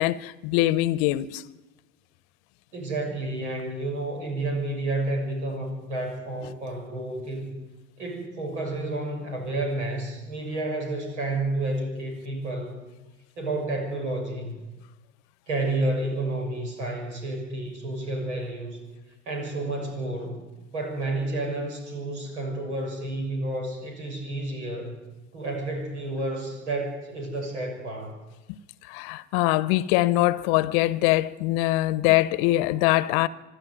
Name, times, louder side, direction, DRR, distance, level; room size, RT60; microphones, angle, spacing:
voice 1, 0.0-1.4 28.5-28.6 28.9-33.3, left 17 dB, 55° left, 1.0 m, -23 dB
voice 2, 2.7-7.6 8.0-12.8 13.4-14.5 15.5-18.8 19.2-20.4 20.7-24.9 25.3-28.2, right 2 dB, 75° right, 6.7 m, -30 dB
25.0 x 12.5 x 9.3 m
figure-of-eight pair, 75°, 35 cm